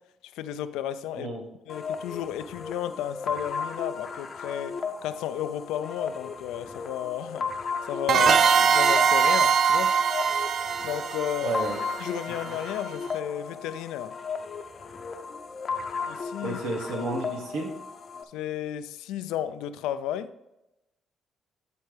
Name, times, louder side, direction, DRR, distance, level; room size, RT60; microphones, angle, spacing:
voice 1, 0.3-1.3 1.7-7.5 7.8-9.9 10.8-11.6 12.0-14.2 16.0-16.6 18.3-20.3, left 11 dB, 90° left, 0.4 m, -33 dB
sound 1, 1.7-18.2, left 5 dB, 50° left, 0.7 m, -36 dB
sound 2, 8.1-12.6, right 6 dB, 60° right, 0.4 m, -22 dB
voice 2, 11.4-11.8 16.4-17.7, right 2 dB, 90° right, 1.4 m, -31 dB
11.0 x 4.3 x 3.4 m
supercardioid pair, 65°, 0 cm